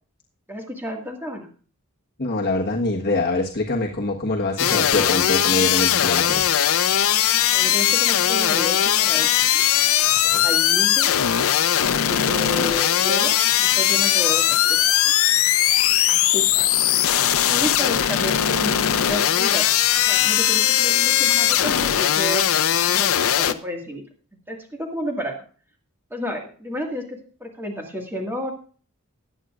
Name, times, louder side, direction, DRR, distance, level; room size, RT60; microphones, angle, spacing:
voice 1, 0.5-1.5 7.5-9.6 10.3-11.1 12.0-14.8 15.0-15.1 16.1-16.7 17.4-19.7 20.1-22.5 22.9-24.0 24.5-25.3 26.1-28.5, left 1 dB, 10° right, 0 dB, 1.9 m, -31 dB
voice 2, 2.2-6.5 10.3-10.4, left 2 dB, 45° left, -2 dB, 1.4 m, -24 dB
sound 1, 4.6-23.5, left 11 dB, 65° left, 0.6 m, -19 dB
20.5 x 8.6 x 2.5 m, 0.40 s
head